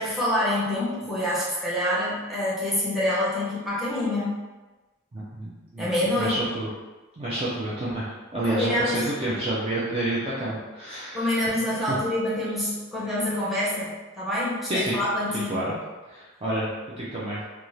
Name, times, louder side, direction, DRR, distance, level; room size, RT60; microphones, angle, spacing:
voice 1, 0.0-4.3 5.8-6.4 8.4-9.1 11.1-15.7, left 1 dB, ahead, -8 dB, 0.9 m, -26 dB
voice 2, 5.1-6.7 7.2-11.4 11.9-12.0 14.7-15.0 15.3-15.7 16.1-16.7 17.0-17.4, right 1 dB, 30° right, -7 dB, 0.5 m, -29 dB
2.6 x 2.3 x 3.1 m, 1.2 s
head